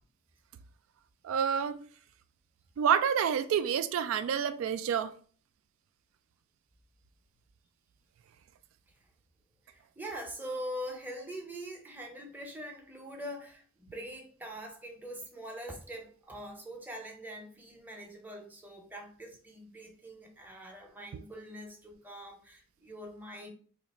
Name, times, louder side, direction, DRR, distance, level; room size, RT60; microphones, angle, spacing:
voice 1, 1.2-1.8 2.8-5.1 21.1-21.2, right 8 dB, 85° right, 0.3 m, -28 dB
voice 2, 9.7-23.5, equal, 10° right, 0.6 m, -43 dB
2.8 x 2.5 x 4.1 m
head